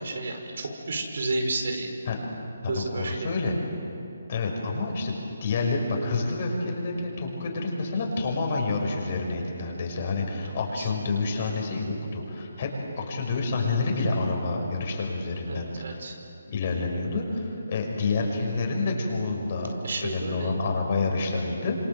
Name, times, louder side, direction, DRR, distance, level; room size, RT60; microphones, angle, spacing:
voice 1, 0.0-1.9 2.7-3.4 10.4-10.9 15.5-16.1 19.8-20.8, right 2 dB, 65° right, 4 dB, 4.9 m, -32 dB
voice 2, 2.7-3.6 4.3-12.7 13.0-16.0 16.5-19.7 20.0-21.8, left 3 dB, 45° left, 1 dB, 6.2 m, -28 dB
27.0 x 25.5 x 7.9 m, 2.6 s
hypercardioid pair, 160°, 0 cm